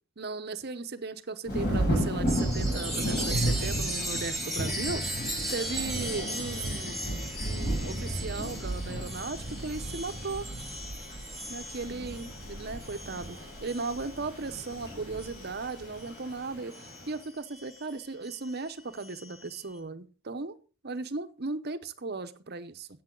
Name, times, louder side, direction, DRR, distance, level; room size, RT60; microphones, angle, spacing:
voice 1, 0.2-5.0 5.5-7.2 7.4-10.5 11.5-20.6 20.8-22.9, right 3 dB, 50° right, 11 dB, 0.9 m, -37 dB
Thunder / Rain, 1.5-17.1, right 1 dB, 50° left, 6.7 m, -34 dB
Chime, 2.3-16.3 16.7-19.5, right 1 dB, ahead, 2.4 m, -38 dB
13.5 x 8.7 x 3.9 m, 0.35 s
head